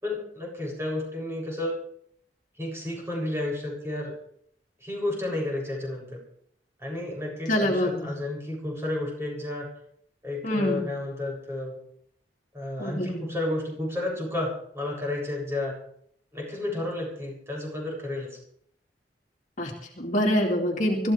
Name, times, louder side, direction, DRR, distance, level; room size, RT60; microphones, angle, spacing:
voice 1, 0.0-1.8 2.6-4.1 4.8-6.2 6.8-9.7 10.2-11.8 12.5-15.8 16.3-18.4, left 1 dB, 15° right, -2 dB, 7.5 m, -31 dB
voice 2, 7.5-8.1 10.4-10.8 12.8-13.2 19.6-21.1, equal, 45° left, -1 dB, 2.6 m, -25 dB
25.5 x 14.5 x 3.5 m, 0.67 s
head